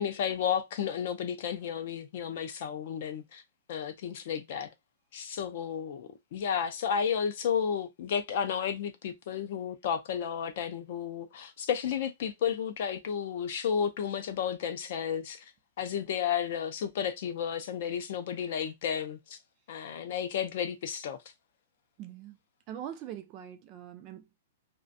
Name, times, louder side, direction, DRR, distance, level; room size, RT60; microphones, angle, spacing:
voice 1, 0.0-3.4 3.7-4.7 5.1-15.5 15.8-19.4 19.7-21.2, left 8 dB, 45° left, 0.4 m, -32 dB
voice 2, 22.0-22.4 22.7-24.4, right 10 dB, 25° right, 0.3 m, -42 dB
2.5 x 2.1 x 2.5 m
hypercardioid pair, 175°, 0 cm